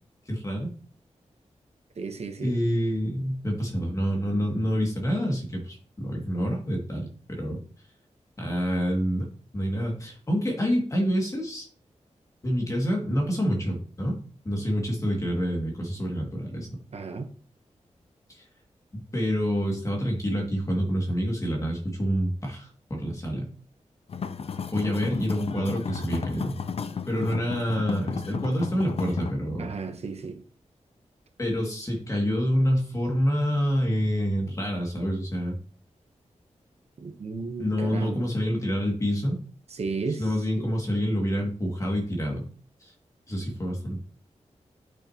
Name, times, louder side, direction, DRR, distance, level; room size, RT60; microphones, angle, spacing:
voice 1, 0.3-0.7 2.4-7.6 8.4-9.2 9.5-11.7 12.4-14.2 14.4-16.7 18.3-18.4 19.1-23.5 24.7-26.6 27.1-29.7 31.4-35.6 37.6-39.4 40.2-42.5 42.8-42.9 43.3-44.0, equal, 25° left, 2.2 m, -27 dB
voice 2, 2.0-2.6 16.9-17.3 29.6-30.4 37.0-38.2 39.7-40.7, right 4 dB, 60° right, 1.0 m, -34 dB
sound 1, 24.1-29.3, left 6 dB, 55° left, 0.5 m, -34 dB
8.5 x 6.3 x 2.9 m
wide cardioid pair, 160°, 12 cm